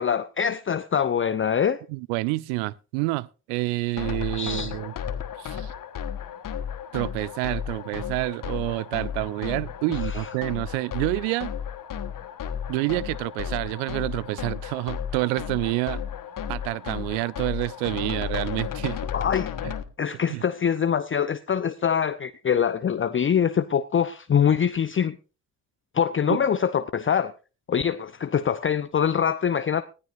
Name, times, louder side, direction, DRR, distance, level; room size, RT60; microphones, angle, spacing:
voice 1, 0.0-1.8 4.4-4.7 10.1-10.2 19.1-19.5 20.0-25.2 25.9-27.3 27.7-29.8, left 8 dB, 30° left, 0.7 m, -24 dB
voice 2, 1.9-4.9 5.4-5.7 6.9-11.5 12.7-16.0 16.5-19.0 19.6-19.7 20.3-20.4 26.3-26.4, right 22 dB, 70° right, 0.6 m, -28 dB
sound 1, 4.0-19.8, left 8 dB, 45° left, 1.4 m, -33 dB
19.5 x 13.5 x 2.6 m
figure-of-eight pair, 40°, 44 cm